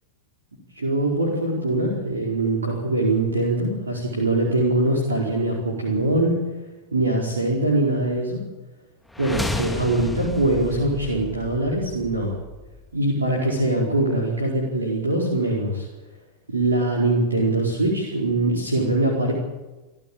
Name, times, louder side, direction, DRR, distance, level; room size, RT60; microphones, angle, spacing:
voice 1, 0.7-6.3 6.9-8.4 9.2-12.4 12.9-15.9 16.5-19.3, right 2 dB, 85° right, -1 dB, 4.8 m, -22 dB
sound 1, 9.1-13.1, left 2 dB, 5° left, 2.1 m, -33 dB
28.0 x 14.5 x 8.9 m, 1.1 s
figure-of-eight pair, 90°, 0 cm